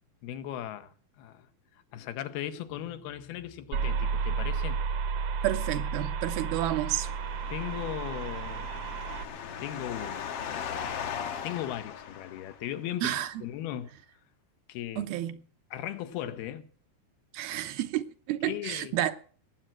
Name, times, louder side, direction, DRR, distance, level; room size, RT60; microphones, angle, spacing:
voice 1, 0.2-1.5 1.9-4.8 7.5-8.7 9.6-10.3 11.4-13.9 14.7-15.1 15.7-16.7 18.4-19.0, left 12 dB, 85° left, 3.0 m, -37 dB
sound 1, 3.7-9.3, right 5 dB, 65° right, 1.6 m, -32 dB
voice 2, 5.4-7.1 13.0-13.3 15.0-15.4 17.3-19.2, right 13 dB, 85° right, 2.8 m, -30 dB
sound 2, 6.5-12.9, left 7 dB, 65° left, 1.5 m, -39 dB
19.5 x 7.8 x 7.5 m
omnidirectional pair, 4.3 m